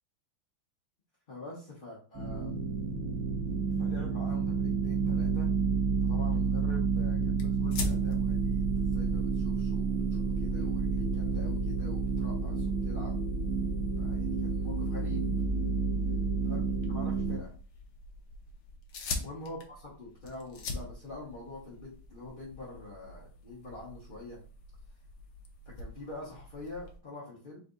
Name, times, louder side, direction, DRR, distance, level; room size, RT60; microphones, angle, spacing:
voice 1, 1.3-2.6 3.8-5.5 6.0-13.1 14.0-15.3 16.4-16.6 16.9-17.5 19.2-24.4 25.6-27.6, left 2 dB, 30° left, -6 dB, 1.2 m, -45 dB
sound 1, 2.1-17.4, right 5 dB, 20° right, 1.5 m, -30 dB
sound 2, 7.4-27.0, left 3 dB, 65° left, 1.3 m, -44 dB
4.0 x 3.4 x 3.8 m, 0.40 s
omnidirectional pair, 2.3 m